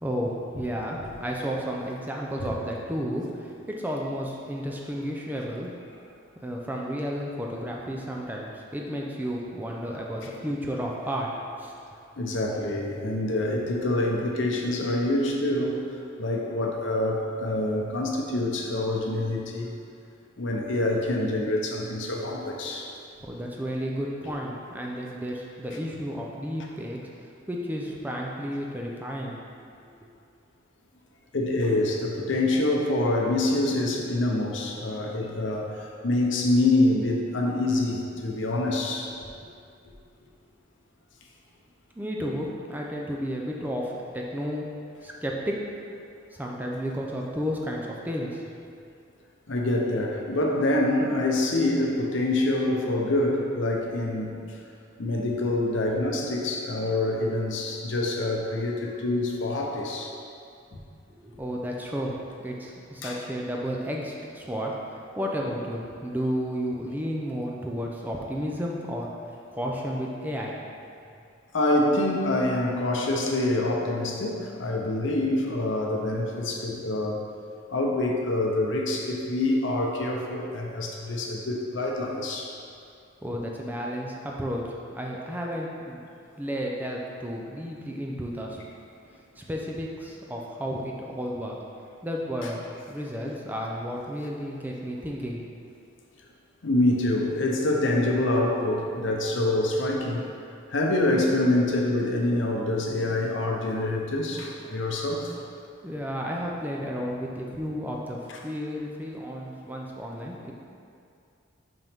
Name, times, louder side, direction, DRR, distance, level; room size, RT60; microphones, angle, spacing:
voice 1, 0.0-5.7 6.4-11.7 23.2-29.4 29.8-29.9 41.9-44.7 45.0-45.6 46.3-48.6 61.1-69.1 69.5-70.6 83.2-84.6 84.9-86.0 86.4-88.6 89.4-91.6 92.0-92.6 92.9-95.4 105.8-110.5, equal, 10° right, -2 dB, 0.5 m, -32 dB
voice 2, 12.2-15.8 16.2-19.7 20.4-22.9 31.3-39.1 49.5-54.6 55.0-60.2 60.7-60.8 63.0-63.2 71.5-77.2 77.7-82.5 92.4-92.5 96.6-100.2 100.7-105.4 108.3-108.4, left 2 dB, 80° left, 0 dB, 0.8 m, -26 dB
5.7 x 5.4 x 3.5 m, 2.4 s
head